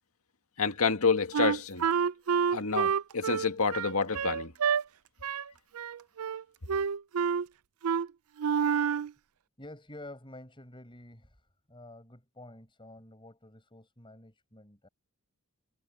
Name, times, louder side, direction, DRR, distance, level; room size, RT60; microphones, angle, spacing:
voice 1, 0.6-1.9 2.5-4.5, left 4 dB, 75° left, 1.9 m, -28 dB
Wind instrument woodwind instrument, 1.3-4.8 5.2-5.5 5.7-6.4 6.7-7.5 7.8-8.1 8.4-9.1, right 7 dB, 75° right, 0.5 m, -28 dB
voice 2, 9.6-14.9, left 1 dB, 20° left, 7.2 m, -49 dB
head